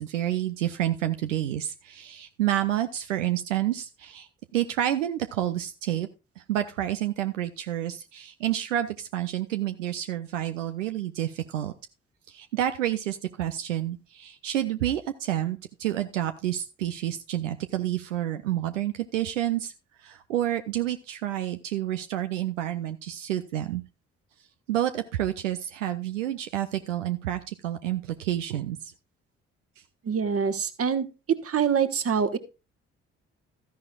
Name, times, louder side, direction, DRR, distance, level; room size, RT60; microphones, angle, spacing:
voice 1, 0.0-6.1 6.4-11.7 12.3-19.7 20.0-23.8 24.7-28.9, right 12 dB, 80° right, 9 dB, 0.6 m, -29 dB
voice 2, 30.1-31.1 31.4-32.4, right 6 dB, 40° right, 11 dB, 1.3 m, -25 dB
13.5 x 10.5 x 2.4 m, 0.29 s
figure-of-eight pair, 40°, 37 cm